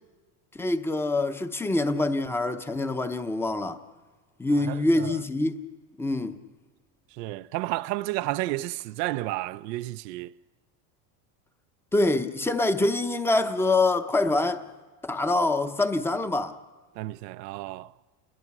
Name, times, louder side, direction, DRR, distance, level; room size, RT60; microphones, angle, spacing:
voice 1, 0.5-3.8 4.4-5.6 6.0-6.4 11.9-14.6 15.0-16.6, left 2 dB, 5° left, 0.7 m, -25 dB
voice 2, 4.6-5.2 7.1-10.3 17.0-17.9, right 17 dB, 90° right, 0.6 m, -32 dB
28.5 x 20.5 x 6.0 m
supercardioid pair, 140°, 48 cm